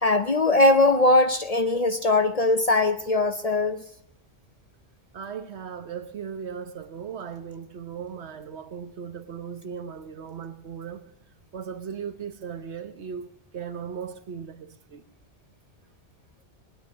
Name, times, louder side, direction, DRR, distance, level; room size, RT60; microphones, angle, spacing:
voice 1, 0.0-3.8, left 2 dB, 40° left, 0.6 m, -20 dB
voice 2, 5.1-11.0 11.5-15.0, right 7 dB, 70° right, 1.3 m, -37 dB
19.0 x 9.6 x 6.3 m
omnidirectional pair, 1.2 m